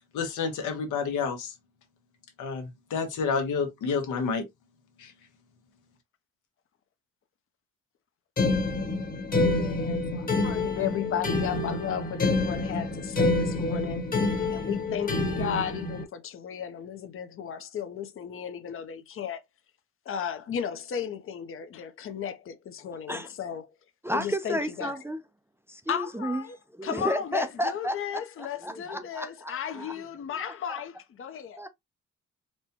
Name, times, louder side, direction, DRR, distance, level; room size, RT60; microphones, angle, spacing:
voice 1, 0.1-1.5 2.4-4.4 5.0-5.1, left 5 dB, 80° left, 1.1 m, -29 dB
sound 1, 8.4-16.0, left 2 dB, 30° left, 1.1 m, -27 dB
voice 2, 9.3-14.1 14.5-19.4 20.1-23.7 24.1-24.9 25.9-26.6 26.8-31.6, left 8 dB, 45° left, 0.7 m, -35 dB
voice 3, 24.0-25.2 25.7-26.4 26.8-28.2 28.6-30.0 30.3-30.8 31.6-31.7, equal, 10° right, 0.4 m, -32 dB
4.2 x 2.2 x 2.8 m
cardioid pair, 90°, 30 cm